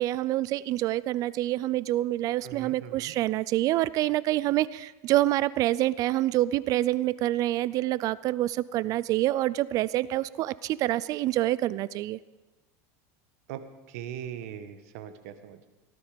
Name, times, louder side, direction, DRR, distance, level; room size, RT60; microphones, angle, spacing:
voice 1, 0.0-12.2, right 15 dB, 45° right, 19 dB, 0.4 m, -27 dB
voice 2, 2.4-3.1 13.5-13.6 13.9-15.7, right 10 dB, 75° right, 10 dB, 1.5 m, -40 dB
18.5 x 12.5 x 5.1 m, 1.2 s
supercardioid pair, 135°, 8 cm